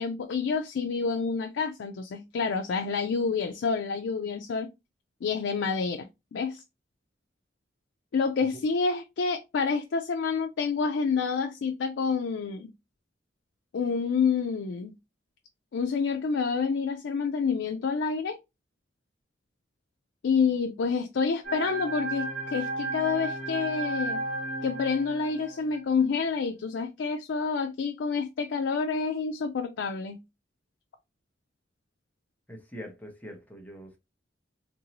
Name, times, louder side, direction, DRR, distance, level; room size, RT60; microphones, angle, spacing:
voice 1, 0.0-4.7 5.2-6.1 6.3-6.6 8.1-12.7 13.7-15.0 15.7-18.4 20.2-24.2 24.6-30.2, left 5 dB, 85° left, 0.4 m, -28 dB
sound 1, 21.4-25.9, right 2 dB, 65° right, 1.8 m, -34 dB
voice 2, 32.5-34.0, equal, 10° left, 0.8 m, -43 dB
3.0 x 2.6 x 2.8 m
head